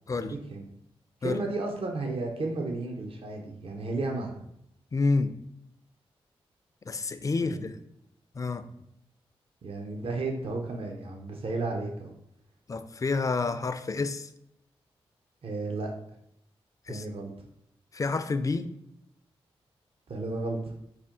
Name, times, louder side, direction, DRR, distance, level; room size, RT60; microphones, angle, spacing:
voice 1, 0.1-0.6 1.2-4.4 7.4-7.7 9.6-12.1 15.4-15.9 16.9-17.3 20.1-20.7, right 3 dB, 60° right, 2 dB, 0.6 m, -33 dB
voice 2, 4.9-5.3 6.9-7.7 8.3-8.7 12.7-14.3 16.9-17.1 17.9-18.7, left 3 dB, 30° left, 11 dB, 0.3 m, -29 dB
4.2 x 2.1 x 3.6 m, 0.77 s
cardioid pair, 45°, 11 cm